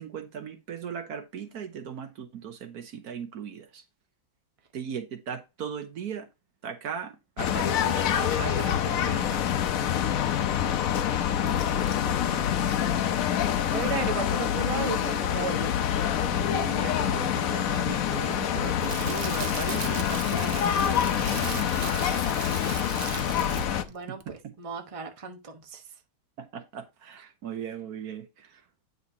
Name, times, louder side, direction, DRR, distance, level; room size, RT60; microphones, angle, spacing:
voice 1, 0.0-3.8 4.7-6.3 6.6-9.5 16.2-22.1 23.3-23.8 24.1-24.2 26.4-28.6, right 7 dB, 65° right, 1.3 m, -38 dB
sound 1, 7.4-23.8, left 9 dB, 65° left, 1.0 m, -26 dB
voice 2, 11.3-12.7 13.7-16.1 23.9-24.2 24.6-25.8, right 5 dB, 25° right, 0.9 m, -35 dB
Crackle, 18.4-23.9 24.2-24.4, right 6 dB, 50° right, 0.7 m, -38 dB
9.1 x 5.5 x 2.8 m
omnidirectional pair, 1.8 m